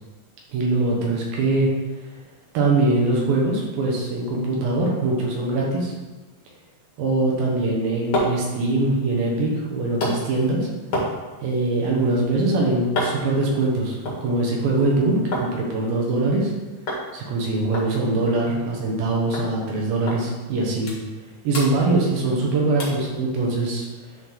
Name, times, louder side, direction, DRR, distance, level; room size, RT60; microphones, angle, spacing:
voice 1, 0.5-1.7 2.5-5.9 7.0-10.7 11.4-16.5 17.1-20.9 21.4-23.9, right 2 dB, 65° right, -2 dB, 2.7 m, -22 dB
sound 1, 7.9-15.5 15.8-16.5 16.9-17.1 17.3-17.4 17.7-19.0 19.3-19.5 20.1-20.2 20.6-21.2 21.5-22.4 22.8-23.1 23.6-23.7, equal, 55° left, 1.6 m, -31 dB
11.0 x 3.8 x 3.9 m, 1.2 s
omnidirectional pair, 5.4 m